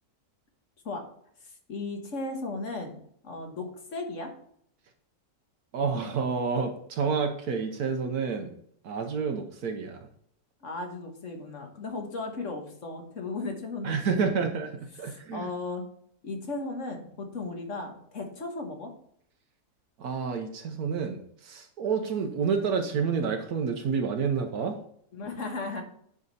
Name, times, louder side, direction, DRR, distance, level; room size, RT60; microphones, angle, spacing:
voice 1, 1.7-4.3 10.6-14.5 15.1-15.9 16.2-18.9 25.1-25.8, left 3 dB, 55° left, 3 dB, 1.6 m, -36 dB
voice 2, 5.7-8.5 8.8-10.1 13.8-15.5 20.0-24.8, right 5 dB, 75° right, 5 dB, 1.3 m, -29 dB
9.6 x 5.0 x 4.1 m, 0.66 s
omnidirectional pair, 1.6 m